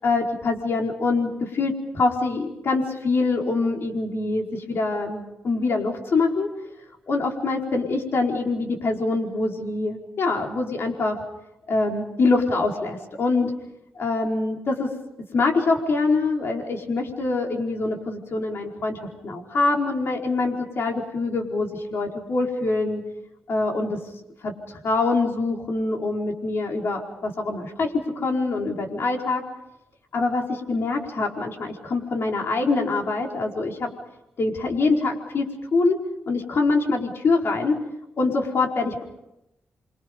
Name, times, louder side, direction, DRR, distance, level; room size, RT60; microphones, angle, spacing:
voice 1, 0.0-6.5 7.1-11.2 11.7-13.5 13.9-14.9 15.3-23.0 23.5-24.0 24.4-29.4 30.1-33.9 34.4-36.0 36.3-37.8 38.2-39.0, left 3 dB, 55° left, 1 dB, 4.8 m, -24 dB
28.5 x 25.0 x 5.4 m, 0.89 s
cardioid pair, 95°, 5 cm